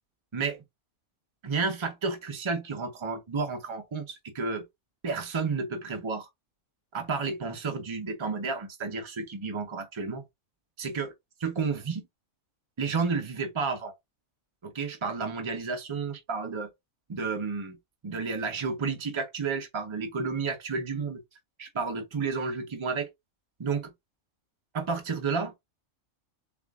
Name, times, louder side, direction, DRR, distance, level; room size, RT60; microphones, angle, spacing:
voice 1, 1.4-4.7 5.0-6.3 6.9-10.2 10.8-11.1 11.4-12.0 12.8-13.9 14.6-16.7 17.1-17.8 18.0-21.2 21.6-23.1 23.6-23.9 24.7-25.5, right 4 dB, 30° right, 0.6 m, -31 dB
6.9 x 2.5 x 2.3 m
omnidirectional pair, 1.5 m